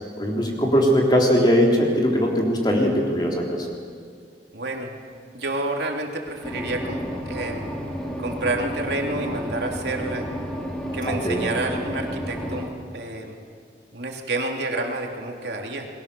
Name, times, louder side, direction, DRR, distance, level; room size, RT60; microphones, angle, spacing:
voice 1, 0.2-3.7 11.1-11.5, equal, 25° left, -1 dB, 3.7 m, -20 dB
voice 2, 4.5-4.9 5.3-7.8 8.2-10.3 10.9-13.4 13.9-15.9, right 2 dB, 70° right, 1 dB, 3.2 m, -29 dB
sound 1, 6.4-12.7, equal, 5° left, 3.0 m, -31 dB
28.5 x 22.0 x 7.0 m, 2.1 s
head